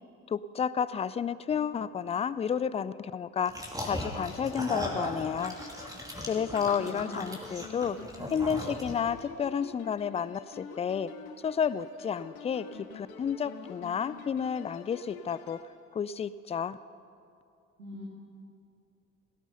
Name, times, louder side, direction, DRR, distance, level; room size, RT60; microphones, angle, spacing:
voice 1, 0.3-5.6 6.3-8.0 8.3-11.1 11.4-12.7 12.9-15.6 15.9-16.8, left 7 dB, 15° left, 17 dB, 0.4 m, -31 dB
sound 1, 3.5-9.2, equal, 10° right, 2.5 m, -38 dB
sound 2, 3.9-15.7, left 6 dB, 80° left, 1.1 m, -47 dB
voice 2, 6.8-7.2 17.8-18.0, equal, 85° right, -4 dB, 2.0 m, -43 dB
17.0 x 13.0 x 5.6 m, 2.5 s
figure-of-eight pair, 55°, 42 cm